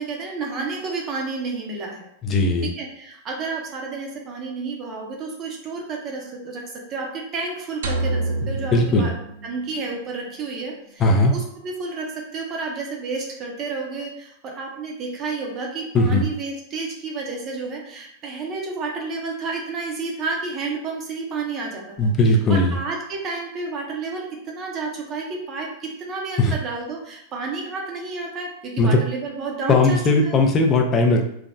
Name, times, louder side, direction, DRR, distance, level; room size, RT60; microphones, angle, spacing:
voice 1, 0.0-2.1 2.8-9.2 9.4-30.4, right 3 dB, 30° right, 0 dB, 0.6 m, -31 dB
voice 2, 2.2-2.7 8.7-9.1 11.0-11.3 15.9-16.2 22.0-22.8 26.4-26.5 28.8-29.0 29.7-31.3, left 2 dB, 25° left, 3 dB, 0.4 m, -18 dB
sound 1, 7.8-10.1, right 2 dB, 85° right, 0.4 m, -28 dB
3.3 x 2.1 x 2.5 m, 0.72 s
supercardioid pair, 150°, 0 cm